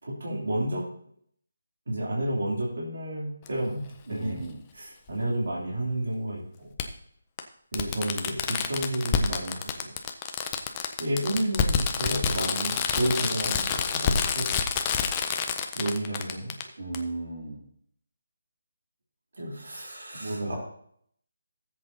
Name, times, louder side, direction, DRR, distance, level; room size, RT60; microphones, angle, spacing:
voice 1, 0.0-0.9 1.9-4.5 4.7-6.7 7.7-9.9 11.0-14.5 15.3-15.4 15.7-16.5 19.4-19.9 20.2-20.5, right 1 dB, 55° right, -4 dB, 3.1 m, -31 dB
Fireworks, 3.5-3.6 5.1-5.2 6.8-6.9 7.4-7.5 7.7-16.6 16.9-17.0, left 7 dB, 15° left, 0.4 m, -28 dB
voice 2, 4.1-4.6 16.8-17.6 19.5-20.6, right 2 dB, 85° right, 0 dB, 3.5 m, -37 dB
17.0 x 7.7 x 2.8 m, 0.65 s
hypercardioid pair, 180°, 0 cm